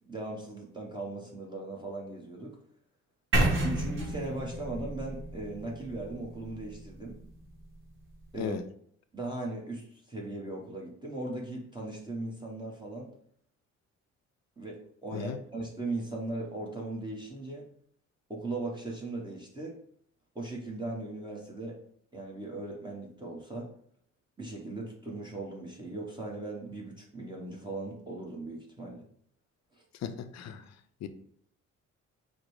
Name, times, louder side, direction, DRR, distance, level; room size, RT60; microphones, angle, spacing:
voice 1, 0.0-2.6 3.6-7.2 8.3-8.6 9.1-13.1 14.6-17.7 18.3-19.8 20.3-21.8 22.1-23.7 24.4-29.1 29.7-29.8, right 2 dB, 15° right, -2 dB, 1.0 m, -38 dB
sound 1, 3.3-7.3, right 1 dB, 40° right, 1.2 m, -31 dB
voice 2, 30.0-30.7 31.0-31.1, left 8 dB, 60° left, 9 dB, 0.6 m, -36 dB
5.0 x 2.1 x 4.7 m, 0.63 s
cardioid pair, 90°, 30 cm